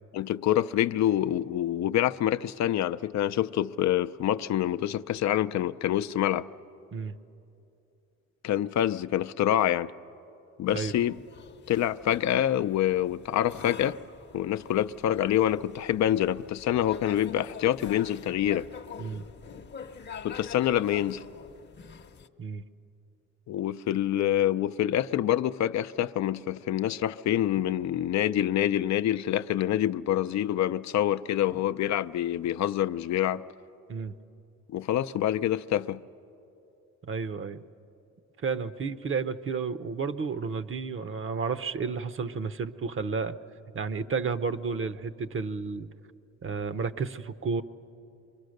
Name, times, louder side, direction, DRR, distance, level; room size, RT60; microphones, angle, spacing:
voice 1, 0.1-6.5 8.4-9.9 10.6-11.2 11.7-14.0 14.3-18.7 20.2-21.2 23.5-33.4 34.7-36.0, left 11 dB, 65° left, 0.5 m, -26 dB
sound 1, 10.7-22.3, left 6 dB, 35° left, 0.8 m, -46 dB
voice 2, 37.0-37.6 38.4-43.4 43.7-45.9 46.4-47.6, right 5 dB, 45° right, 0.8 m, -32 dB
27.5 x 23.5 x 6.5 m
cardioid pair, 90°, 30 cm